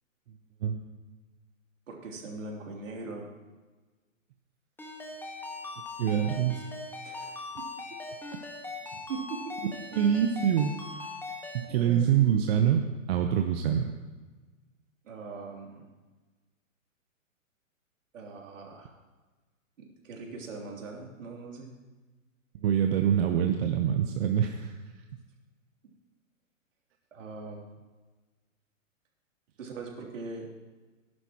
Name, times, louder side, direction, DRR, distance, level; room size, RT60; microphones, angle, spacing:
voice 1, 1.9-3.3 7.0-7.3 9.1-9.7 11.7-12.1 15.0-15.8 18.1-18.9 19.8-21.7 27.1-27.6 29.6-30.5, right 3 dB, 70° right, -1 dB, 3.1 m, -40 dB
Ringtone, 4.8-11.7, left 3 dB, 5° left, 1.4 m, -40 dB
voice 2, 6.0-6.6 9.9-10.7 11.0-11.1 11.5-13.9 22.6-24.7, right 9 dB, 50° right, 5 dB, 0.9 m, -25 dB
19.0 x 11.0 x 3.0 m, 1.3 s
hypercardioid pair, 125°, 40 cm